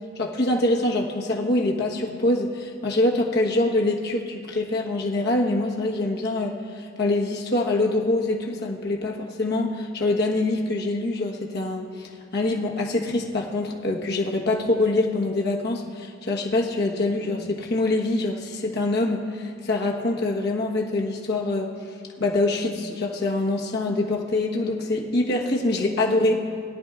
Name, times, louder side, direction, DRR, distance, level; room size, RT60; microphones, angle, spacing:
voice 1, 0.2-21.7 22.2-26.4, left 2 dB, 50° left, -1 dB, 1.2 m, -24 dB
21.0 x 11.5 x 2.4 m, 2.2 s
head